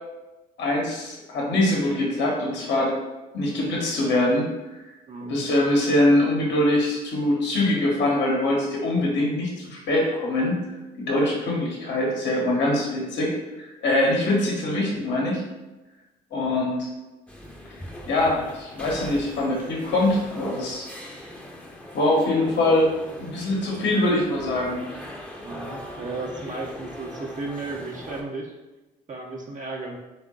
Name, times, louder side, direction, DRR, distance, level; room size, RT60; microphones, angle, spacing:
voice 1, 0.6-3.0 3.3-4.7 5.3-10.6 11.0-15.4 16.3-16.9 18.1-20.8 21.9-22.9 23.2-24.8, left 1 dB, 55° left, -2 dB, 1.1 m, -23 dB
voice 2, 5.1-5.4 25.4-28.5 29.1-30.0, right 3 dB, 35° right, -1 dB, 0.7 m, -34 dB
sound 1, 17.3-28.2, equal, 5° left, 0.8 m, -40 dB
3.6 x 2.4 x 3.7 m, 1.1 s
hypercardioid pair, 50°, 21 cm